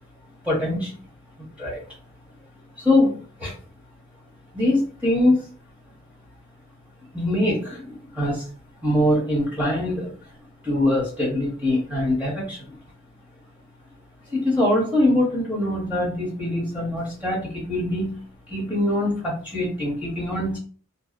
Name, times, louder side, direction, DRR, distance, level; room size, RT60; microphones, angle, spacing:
voice 1, 0.4-1.0 1.4-1.8 2.8-3.1 3.4-3.5 4.5-5.4 7.1-8.5 8.8-10.1 10.6-12.8 14.3-18.2 18.5-20.6, left 1 dB, 5° right, -6 dB, 0.8 m, -23 dB
2.6 x 2.0 x 2.4 m, 0.42 s
head